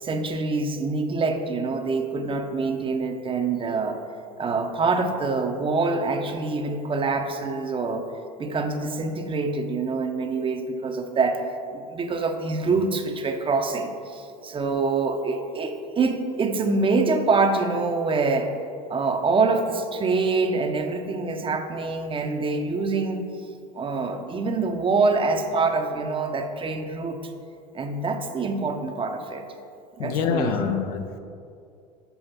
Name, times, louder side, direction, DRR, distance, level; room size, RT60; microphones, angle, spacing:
voice 1, 0.0-4.0 4.4-8.1 8.4-11.4 11.7-18.5 18.9-23.2 23.7-27.2 27.7-29.5 30.0-30.7, right 3 dB, 25° right, 5 dB, 0.8 m, -25 dB
voice 2, 30.0-31.2, left 6 dB, 70° left, 6 dB, 0.8 m, -25 dB
7.0 x 5.3 x 5.7 m, 2.4 s
hypercardioid pair, 85°, 20 cm